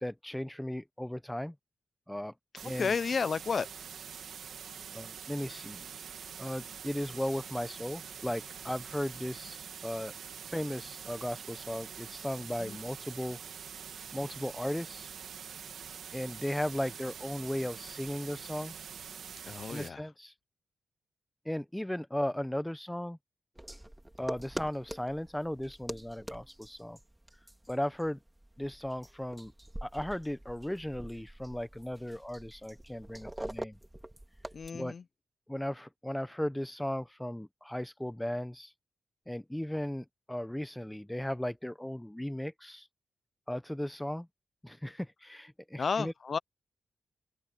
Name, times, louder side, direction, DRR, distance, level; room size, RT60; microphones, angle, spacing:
voice 1, 0.0-1.5 2.1-2.3 2.6-2.9 4.9-5.8 6.4-10.1 10.4-13.4 14.1-15.1 16.1-18.8 19.7-20.3 21.4-23.2 24.2-27.0 27.7-28.2 28.6-29.5 29.8-33.8 34.7-34.9 35.5-38.7 39.3-42.9 43.5-44.3 44.6-46.1, left 1 dB, 5° left, 0.9 m, -36 dB
sound 1, 2.6-19.9, right 7 dB, 85° right, 2.1 m, -45 dB
voice 2, 2.8-3.7 12.6-12.8 19.5-20.0 34.5-35.0 45.8-46.4, left 5 dB, 50° left, 0.7 m, -32 dB
sound 2, 23.5-34.7, right 1 dB, 10° right, 3.1 m, -45 dB
cardioid pair, 100°, 0 cm